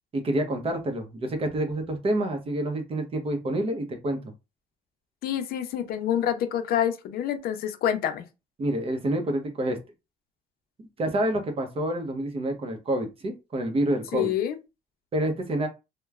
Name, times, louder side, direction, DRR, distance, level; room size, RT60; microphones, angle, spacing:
voice 1, 0.1-4.3 8.6-9.8 11.0-14.3 15.1-15.7, right 1 dB, 35° right, 0.8 m, -28 dB
voice 2, 5.2-8.2 14.1-14.6, left 10 dB, 65° left, 0.6 m, -27 dB
3.0 x 2.1 x 2.4 m
cardioid pair, 110°, 17 cm